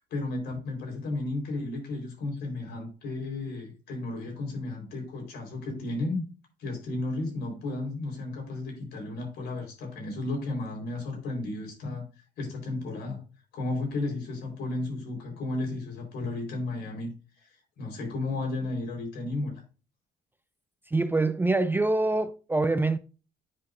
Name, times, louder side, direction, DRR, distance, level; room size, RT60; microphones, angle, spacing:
voice 1, 0.1-6.2 6.6-12.1 12.4-13.2 13.5-19.6, left 2 dB, 70° left, 4.1 m, -33 dB
voice 2, 20.9-23.0, right 2 dB, 10° right, 0.5 m, -25 dB
9.3 x 5.7 x 2.5 m
cardioid pair, 110°, 17 cm